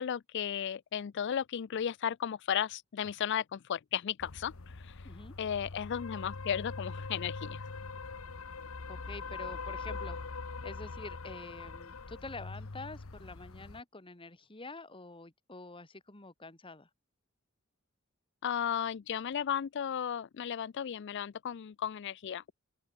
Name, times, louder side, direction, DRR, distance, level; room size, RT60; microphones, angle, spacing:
voice 1, 0.0-5.1 5.4-7.7 18.4-22.4, left 8 dB, 55° left, 0.4 m, -35 dB
sound 1, 4.2-13.8, left 4 dB, 80° left, 1.1 m, -42 dB
voice 2, 8.9-10.2 10.6-16.9, left 3 dB, 25° left, 2.0 m, -47 dB
open air
head